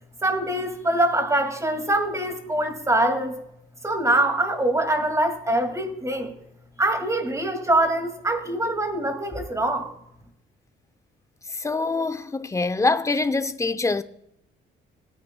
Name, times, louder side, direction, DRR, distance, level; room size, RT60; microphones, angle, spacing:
voice 1, 0.2-3.4 3.8-6.3 6.8-9.9, right 1 dB, 15° right, 2.3 m, -24 dB
voice 2, 11.5-14.0, left 3 dB, 15° left, 0.7 m, -24 dB
19.5 x 9.8 x 2.3 m
cardioid pair, 90°, 20 cm